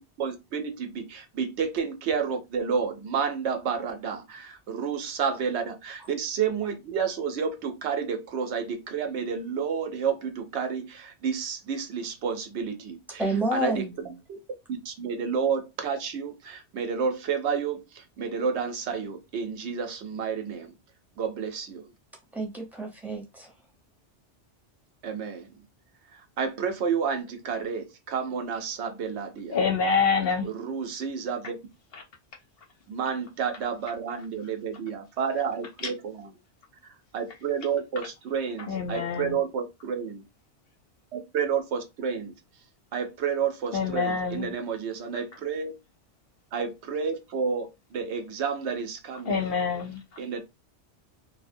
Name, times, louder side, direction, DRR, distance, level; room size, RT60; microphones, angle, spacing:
voice 1, 0.2-13.2 13.5-13.9 14.3-14.4 14.7-20.7 21.2-21.9 25.0-25.5 26.1-29.6 30.4-31.6 32.9-36.2 36.8-40.2 41.1-42.3 42.9-45.7 46.5-49.4 50.2-50.4, right 6 dB, 70° right, 0.8 m, -30 dB
voice 2, 13.2-14.1 22.3-23.5, right 1 dB, ahead, 0.7 m, -29 dB
voice 3, 29.5-30.5 31.9-32.0 38.7-39.4 43.7-44.6 49.2-50.0, left 5 dB, 65° left, 0.7 m, -26 dB
2.7 x 2.1 x 2.5 m
omnidirectional pair, 1.2 m